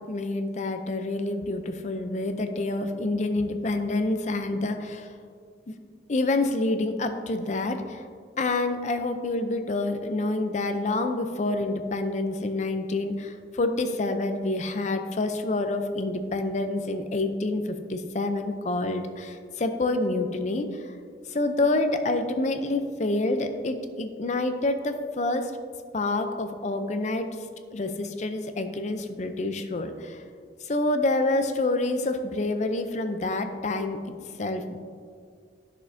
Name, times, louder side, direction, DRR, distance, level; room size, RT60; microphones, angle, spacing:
voice 1, 0.0-5.1 5.7-5.8 6.1-8.1 8.4-20.9 21.3-25.5 25.9-27.3 27.7-30.2 30.6-34.8, left 2 dB, 40° left, 7 dB, 0.5 m, -27 dB
11.0 x 6.3 x 2.7 m, 2.1 s
head